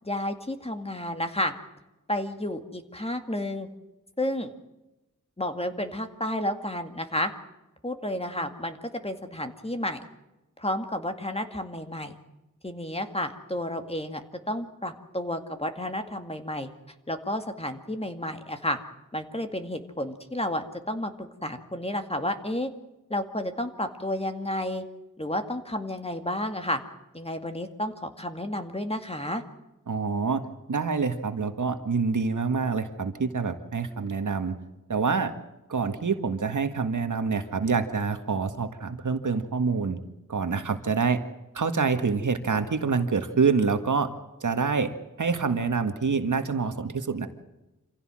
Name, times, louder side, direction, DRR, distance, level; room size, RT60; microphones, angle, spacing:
voice 1, 0.0-1.5 2.1-3.7 4.2-4.5 5.4-7.3 7.8-8.8 9.0-10.0 10.6-12.1 12.6-14.2 14.5-16.7 17.1-18.8 19.1-22.7 23.1-24.8 25.2-26.8 27.1-29.4, left 1 dB, 20° left, 7 dB, 2.1 m, -31 dB
voice 2, 29.9-30.4 30.7-34.6 34.9-35.3 35.7-40.0 40.3-41.2 41.6-44.1 44.4-44.9 45.2-47.3, right 5 dB, 65° right, 8 dB, 1.8 m, -26 dB
26.5 x 16.0 x 7.6 m, 0.99 s
wide cardioid pair, 75°, 33 cm